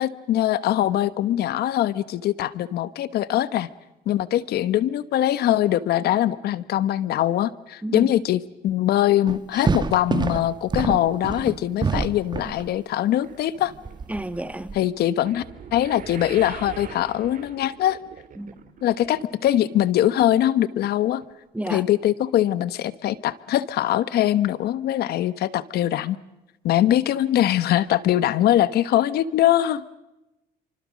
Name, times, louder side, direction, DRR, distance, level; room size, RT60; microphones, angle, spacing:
voice 1, 0.0-3.7 4.1-13.7 14.7-15.4 15.7-18.0 18.8-21.2 21.7-26.2 26.6-29.8, left 12 dB, 70° left, 16 dB, 1.2 m, -22 dB
sound 1, 9.3-12.7 13.9-14.8, right 5 dB, 25° right, 1.6 m, -26 dB
sound 2, 13.1-19.5 19.8-20.3 20.8-20.9 21.2-21.3, right 8 dB, 50° right, 3.1 m, -43 dB
voice 2, 14.1-14.8 18.4-18.5 21.5-21.8, right 1 dB, 10° right, 13 dB, 1.3 m, -30 dB
29.0 x 25.0 x 6.4 m, 0.96 s
cardioid pair, 110°, 17 cm